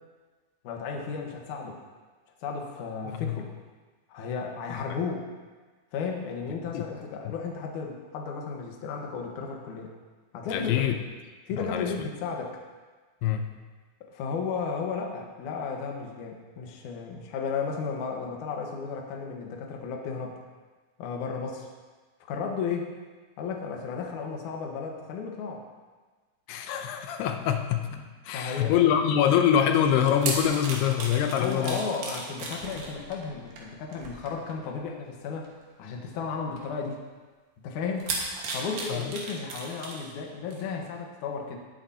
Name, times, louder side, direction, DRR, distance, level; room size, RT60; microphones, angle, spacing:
voice 1, 0.6-1.8 2.4-3.5 4.1-5.3 5.9-9.9 10.3-10.9 11.5-12.6 14.1-20.4 21.0-21.7 22.3-22.9 23.4-25.6 28.3-28.7 31.3-35.5 35.8-37.0 37.6-38.1 38.5-41.6, left 5 dB, 65° left, 1 dB, 2.4 m, -34 dB
voice 2, 10.5-10.9 11.6-11.9 13.2-13.6 26.5-31.8 38.9-39.1, left 9 dB, 85° left, 5 dB, 2.8 m, -25 dB
sound 1, 29.9-34.7 35.4-35.6 36.6-36.7 38.0-40.1 40.5-40.6, right 3 dB, 65° right, 3.2 m, -35 dB
18.5 x 9.2 x 2.8 m, 1.4 s
omnidirectional pair, 4.5 m